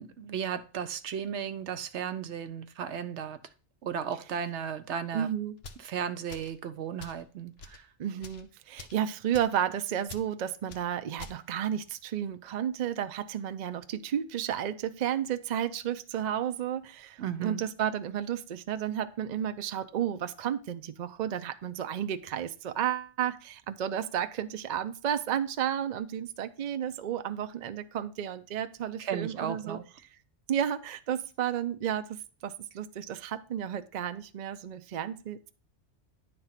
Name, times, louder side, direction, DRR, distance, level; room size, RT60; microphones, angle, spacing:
voice 1, 0.0-3.4 3.8-5.3 5.8-7.9 17.2-17.6 29.0-29.8, right 8 dB, 75° right, 10 dB, 1.0 m, -35 dB
voice 2, 5.1-5.6 8.0-29.8 30.5-35.5, right 9 dB, 55° right, 10 dB, 0.5 m, -32 dB
sound 1, 5.6-5.9 6.3-6.6 7.0-7.2 7.6-7.8 8.2-8.4 8.8-9.0 9.3-9.6 10.1-10.3 10.7-10.8 11.2-11.4, left 4 dB, 65° left, 1.0 m, -46 dB
9.9 x 3.4 x 5.7 m, 0.37 s
omnidirectional pair, 1.2 m